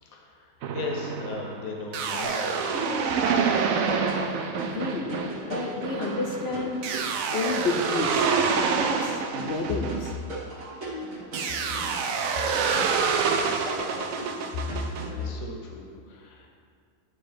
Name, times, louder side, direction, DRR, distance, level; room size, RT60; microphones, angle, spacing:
voice 1, 0.0-4.1 13.3-14.3 15.1-16.5, left 4 dB, 85° left, 0 dB, 1.3 m, -39 dB
sound 1, 0.6-10.7 11.3-15.0, right 5 dB, 80° right, 1.0 m, -27 dB
sound 2, 2.2-15.3, right 1 dB, 60° right, 1.7 m, -38 dB
voice 2, 4.5-6.8 7.3-10.1, left 3 dB, 60° left, 2 dB, 0.7 m, -31 dB
9.2 x 3.2 x 5.0 m, 2.2 s
omnidirectional pair, 1.4 m